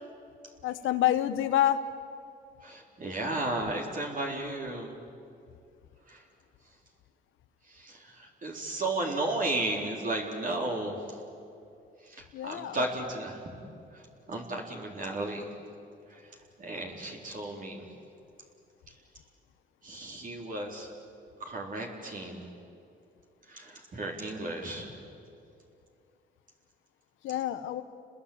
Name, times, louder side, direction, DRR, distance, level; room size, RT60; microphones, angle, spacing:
voice 1, 0.6-1.8 12.3-12.8 27.2-27.8, left 12 dB, 85° left, 10 dB, 1.2 m, -27 dB
voice 2, 2.6-4.9 6.1-6.2 7.8-11.0 12.1-13.6 14.3-15.5 16.6-17.8 19.8-20.9 21.4-22.4 23.5-24.9, right 2 dB, 45° right, 0 dB, 4.0 m, -34 dB
29.5 x 21.0 x 8.7 m, 2.6 s
cardioid pair, 90°, 20 cm